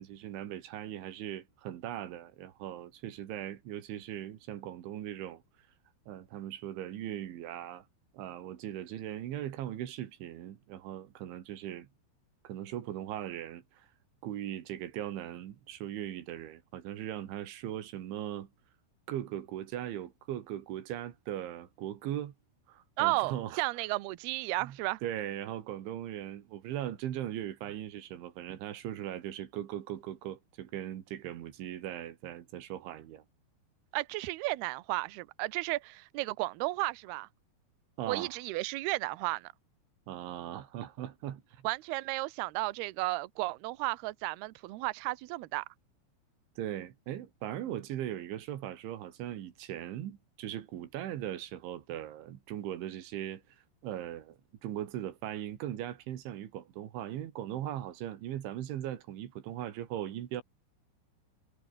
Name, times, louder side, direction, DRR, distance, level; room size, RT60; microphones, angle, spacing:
voice 1, 0.0-5.4 6.1-7.9 8.1-11.9 12.4-13.9 14.2-18.5 19.1-22.3 22.7-23.6 24.6-33.2 38.0-38.4 40.1-41.7 46.6-53.4 53.8-60.4, right 12 dB, 70° right, 4.3 m, -39 dB
voice 2, 23.0-25.0 33.9-37.3 38.1-39.5 41.6-45.7, right 21 dB, 85° right, 2.2 m, -33 dB
omnidirectional pair, 5.9 m